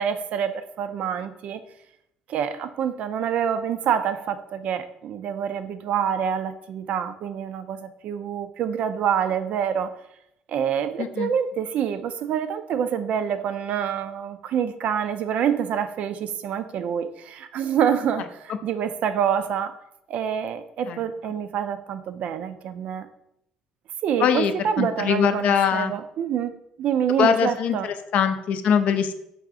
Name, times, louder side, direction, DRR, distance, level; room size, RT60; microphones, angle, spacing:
voice 1, 0.0-1.6 2.3-9.9 10.5-19.7 20.1-23.1 24.0-27.9, right 8 dB, 65° right, 10 dB, 0.3 m, -26 dB
voice 2, 11.0-11.3 20.9-21.0 24.2-25.9 27.2-29.1, left 7 dB, 60° left, 9 dB, 0.4 m, -22 dB
4.8 x 2.4 x 3.6 m, 0.78 s
supercardioid pair, 80°, 3 cm